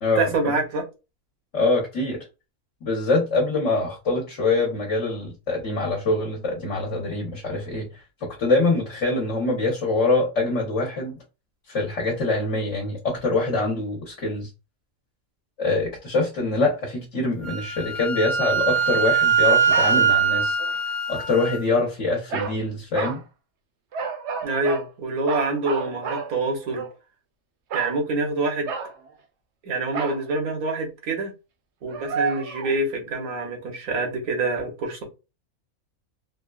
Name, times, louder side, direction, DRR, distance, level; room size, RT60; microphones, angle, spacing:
voice 1, 0.1-0.8 24.4-26.8 27.7-28.7 29.6-31.3 31.8-35.0, right 3 dB, 85° right, 1.5 m, -26 dB
voice 2, 1.5-2.3 2.8-7.9 8.2-11.2 11.7-14.5 15.6-20.6 21.1-23.2, left 2 dB, 60° left, 1.3 m, -24 dB
Wind instrument woodwind instrument, 17.4-21.6, right 6 dB, 80° left, 1.2 m, -22 dB
sound 1, 19.5-20.0 20.6-20.8 22.3-22.6 22.9-23.2 23.9-24.9 25.3-26.9 27.7-28.0 28.7-29.1 29.9-30.3 31.9-32.8, right 5 dB, 60° right, 0.8 m, -31 dB
3.8 x 2.2 x 2.3 m
omnidirectional pair, 1.5 m